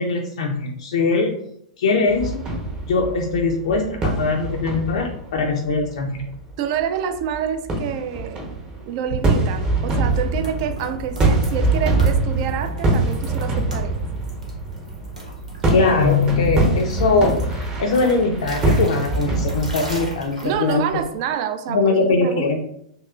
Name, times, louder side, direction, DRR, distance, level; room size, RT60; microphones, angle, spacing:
voice 1, 0.0-1.3 1.8-2.5 2.9-6.2 15.7-20.8 21.7-22.6, left 3 dB, 55° left, 1 dB, 0.4 m, -21 dB
sound 1, 2.1-6.4 6.8-7.4 7.7-20.2, right 2 dB, 20° right, 0.8 m, -24 dB
voice 2, 6.6-8.5 8.8-14.0 20.4-22.6, right 8 dB, 45° right, 7 dB, 0.4 m, -27 dB
sound 2, 9.1-21.1, right 2 dB, 85° right, 0.9 m, -38 dB
3.0 x 2.8 x 2.4 m, 0.73 s
figure-of-eight pair, 100°, 4 cm